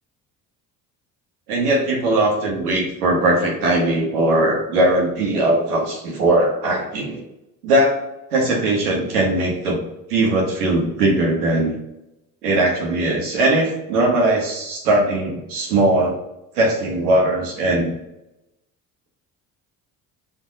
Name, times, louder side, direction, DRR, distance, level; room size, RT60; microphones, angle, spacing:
voice 1, 1.5-7.2 7.6-8.0 8.3-9.8 10.1-11.7 12.4-16.2 16.5-17.9, right 1 dB, 85° right, 0 dB, 1.0 m, -19 dB
6.5 x 2.6 x 2.5 m, 0.91 s
hypercardioid pair, 55°, 44 cm